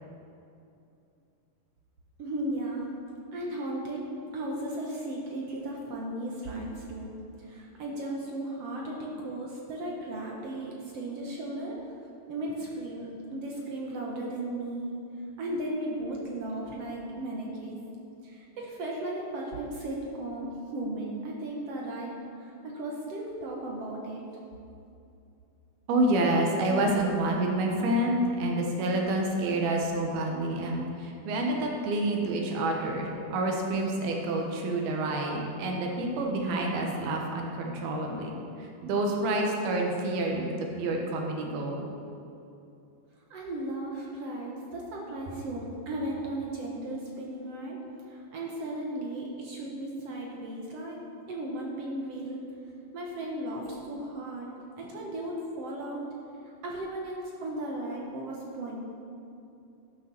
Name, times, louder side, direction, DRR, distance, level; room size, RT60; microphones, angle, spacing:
voice 1, 2.2-2.9 3.3-4.0 4.3-7.1 7.4-11.8 12.3-14.9 15.4-17.8 18.2-22.1 22.4-24.2 43.3-47.8 48.1-51.0 51.3-52.4 52.9-56.0 56.6-58.8, right 1 dB, 65° right, -2 dB, 1.7 m, -36 dB
voice 2, 25.9-38.3 38.6-41.9, right 1 dB, 90° right, 1 dB, 3.1 m, -28 dB
13.0 x 6.6 x 6.0 m, 2.7 s
omnidirectional pair, 4.2 m